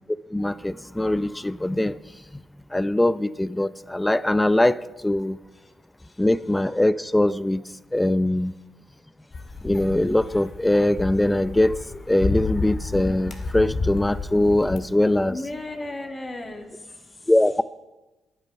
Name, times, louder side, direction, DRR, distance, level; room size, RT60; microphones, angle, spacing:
voice 1, 0.3-1.9 2.7-4.8 5.0-5.4 6.2-7.6 7.9-8.5 9.6-11.8 12.1-15.4 17.3-17.6, left 1 dB, 10° left, 17 dB, 0.6 m, -21 dB
sound 1, 9.3-14.8, left 3 dB, 50° left, 1.9 m, -31 dB
voice 2, 15.3-17.3, left 2 dB, 30° left, 2 dB, 2.4 m, -36 dB
15.0 x 10.5 x 5.5 m, 1.1 s
supercardioid pair, 55°, 0 cm